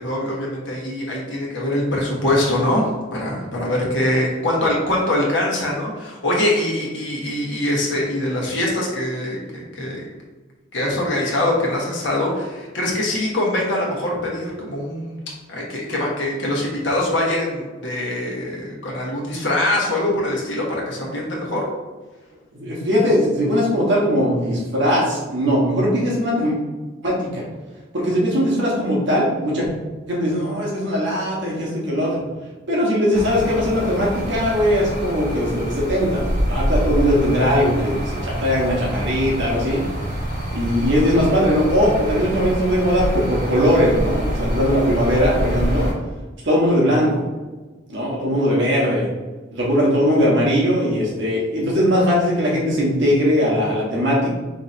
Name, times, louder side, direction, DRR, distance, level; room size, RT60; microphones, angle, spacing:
voice 1, 0.0-10.1 10.7-15.2 15.5-21.6, left 1 dB, 70° left, -3 dB, 1.2 m, -23 dB
voice 2, 22.5-26.6 27.0-27.4 27.9-29.7 30.1-32.2 32.7-39.8 40.5-45.9 46.4-47.2 47.9-49.1 49.5-54.3, equal, 65° right, -4 dB, 1.1 m, -20 dB
sound 1, 33.1-45.9, equal, 50° right, 1.3 m, -26 dB
5.4 x 2.9 x 2.6 m, 1.3 s
head